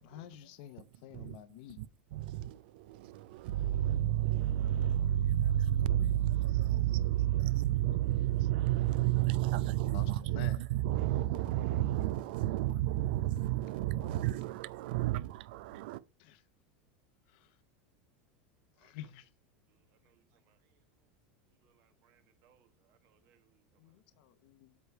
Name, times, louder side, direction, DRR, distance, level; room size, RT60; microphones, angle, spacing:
voice 1, 0.0-1.8 3.8-3.9 4.7-6.0 9.0-9.1 9.6-10.6 14.0-14.1 16.2-16.4 17.3-17.6 18.8-19.3 23.8-24.8, left 12 dB, 65° left, 0.8 m, -51 dB
voice 2, 2.1-16.0, right 13 dB, 70° right, 0.4 m, -31 dB
voice 3, 19.7-20.8 21.6-24.0, right 9 dB, 50° right, 1.2 m, -72 dB
8.2 x 3.3 x 5.8 m
supercardioid pair, 140°, 5 cm